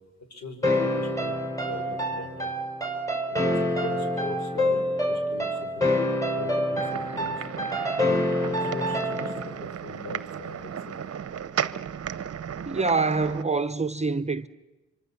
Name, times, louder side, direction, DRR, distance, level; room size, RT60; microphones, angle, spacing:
voice 1, 0.3-1.4 1.7-2.5 3.3-5.7 6.4-7.4 8.0-11.1, left 2 dB, 60° left, 5.4 m, -41 dB
sound 1, 0.6-9.5, left 1 dB, 10° left, 5.1 m, -27 dB
sound 2, 6.7-13.4, right 8 dB, 50° right, 0.8 m, -35 dB
voice 2, 12.6-14.5, right 4 dB, 20° right, 0.9 m, -25 dB
25.5 x 25.0 x 7.2 m
cardioid pair, 75°, 30 cm